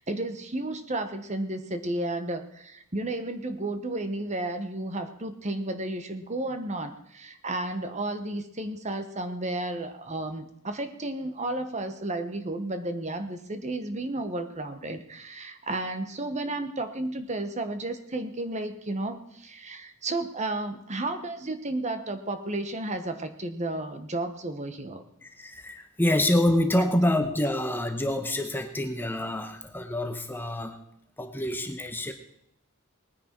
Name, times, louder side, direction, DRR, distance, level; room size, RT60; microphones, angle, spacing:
voice 1, 0.0-25.0 26.8-26.9, right 2 dB, 30° right, 8 dB, 1.2 m, -32 dB
voice 2, 25.2-30.8 31.2-32.1, left 1 dB, 10° left, 6 dB, 0.9 m, -27 dB
19.5 x 9.9 x 4.5 m, 0.75 s
head